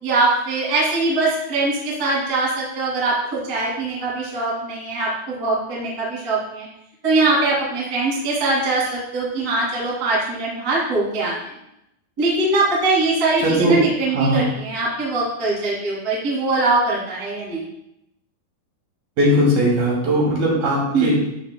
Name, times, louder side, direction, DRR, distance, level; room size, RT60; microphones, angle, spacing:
voice 1, 0.0-6.7 7.0-11.6 12.2-17.6 20.9-21.1, right 2 dB, 30° right, -5 dB, 2.0 m, -22 dB
voice 2, 13.4-13.8 14.1-14.4 19.2-21.1, equal, 60° right, -4 dB, 4.1 m, -19 dB
12.5 x 7.7 x 2.2 m, 0.83 s
omnidirectional pair, 5.1 m